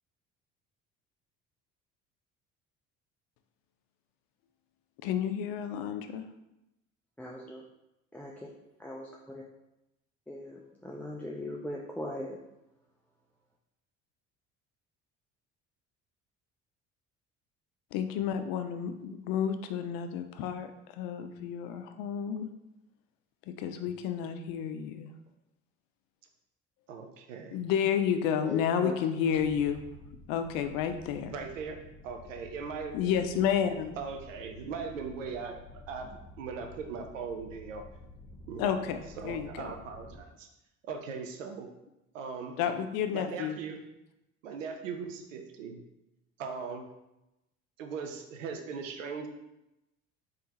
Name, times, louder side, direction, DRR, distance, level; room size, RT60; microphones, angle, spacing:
voice 1, 5.0-6.2 17.9-22.5 23.5-25.1 27.5-29.8 30.3-31.3 32.9-33.9 38.5-39.0 39.2-39.7 42.6-43.6, left 8 dB, 65° left, 8 dB, 0.5 m, -31 dB
voice 2, 7.2-7.6 8.1-8.3 8.8-9.1 10.3-12.4 28.4-28.9, left 1 dB, 5° left, -3 dB, 0.4 m, -39 dB
voice 3, 26.9-27.6 31.3-31.8 32.0-33.6 34.0-35.6 35.9-37.8 38.5-38.8 39.2-40.5 40.8-41.7 42.1-42.6 43.1-43.8 44.4-45.8 46.4-46.8 47.8-49.3, right 5 dB, 90° right, 5 dB, 0.5 m, -39 dB
sound 1, 29.7-40.2, left 2 dB, 30° left, 1.0 m, -51 dB
3.5 x 3.5 x 2.8 m, 0.91 s
hypercardioid pair, 60°, 37 cm